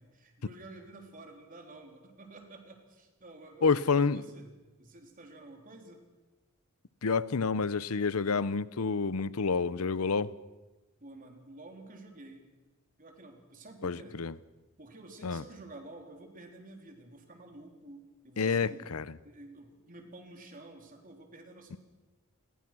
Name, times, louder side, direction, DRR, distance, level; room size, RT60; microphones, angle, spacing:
voice 1, 0.0-4.5 4.8-6.0 11.0-12.5 13.0-14.2 14.8-18.9 19.2-21.8, right 2 dB, 40° right, 3.8 m, -50 dB
voice 2, 3.6-4.2 7.0-10.3 13.8-14.3 15.2-15.4 18.4-19.0 21.7-21.8, left 5 dB, 80° left, 0.7 m, -28 dB
28.5 x 21.5 x 6.2 m
head